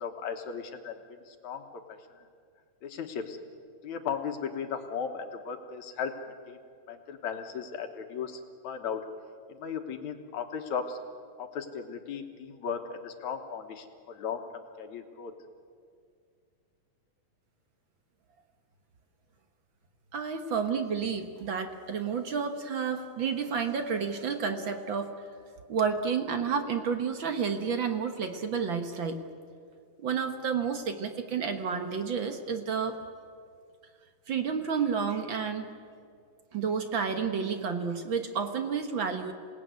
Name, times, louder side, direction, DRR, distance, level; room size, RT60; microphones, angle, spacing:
voice 1, 0.0-2.2 2.8-3.4 3.8-6.1 6.5-6.6 6.9-9.1 9.5-11.0 11.4-15.3, left 6 dB, 65° left, 6 dB, 2.5 m, -36 dB
voice 2, 20.1-25.2 25.7-29.2 30.0-33.0 34.3-35.7 36.5-39.3, right 6 dB, 55° right, 7 dB, 1.4 m, -30 dB
27.5 x 18.5 x 9.4 m, 2.2 s
omnidirectional pair, 3.8 m